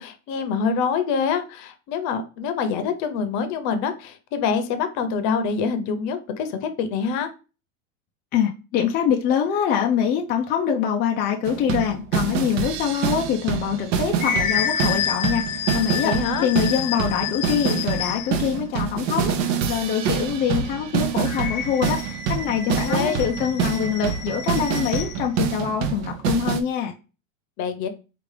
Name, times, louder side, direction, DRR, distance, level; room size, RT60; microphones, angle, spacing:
voice 1, 0.0-7.3 16.0-16.5 22.9-23.2 27.6-27.9, left 6 dB, 45° left, 0.8 m, -25 dB
voice 2, 8.3-26.9, left 8 dB, 25° left, 0.4 m, -24 dB
sound 1, 11.4-26.6, right 7 dB, 65° right, 0.7 m, -26 dB
sound 2, 13.7-18.5 21.2-25.2, left 7 dB, 90° left, 0.9 m, -29 dB
4.8 x 2.5 x 3.2 m
supercardioid pair, 130°, 40 cm